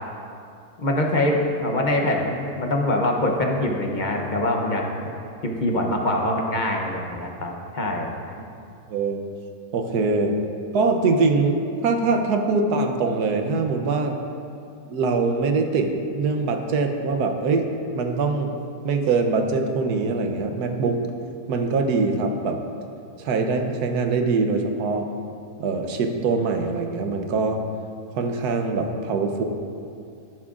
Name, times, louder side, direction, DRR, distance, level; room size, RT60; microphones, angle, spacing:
voice 1, 0.8-4.8 5.4-8.1, left 1 dB, 40° left, 1 dB, 0.8 m, -24 dB
voice 2, 8.9-9.2 9.7-10.3 10.7-14.2 14.9-17.7 17.9-21.0 21.5-22.6 23.2-25.1 25.6-27.6 28.1-29.4, right 4 dB, 80° right, 5 dB, 1.3 m, -23 dB
12.0 x 11.0 x 2.5 m, 2.5 s
omnidirectional pair, 1.7 m